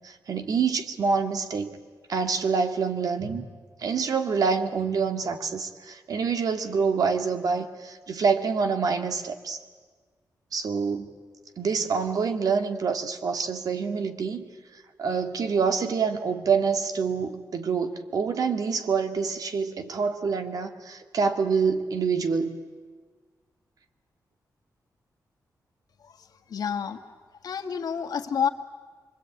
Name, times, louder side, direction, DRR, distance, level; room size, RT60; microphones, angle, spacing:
voice 1, 0.0-1.8 2.1-3.5 3.8-9.6 10.5-11.1 11.6-14.5 15.0-22.5, right 5 dB, 60° right, 6 dB, 2.1 m, -26 dB
voice 2, 26.0-27.0 27.4-28.5, left 7 dB, 70° left, 5 dB, 1.8 m, -29 dB
27.0 x 23.5 x 9.1 m, 1.4 s
wide cardioid pair, 170°, 7 cm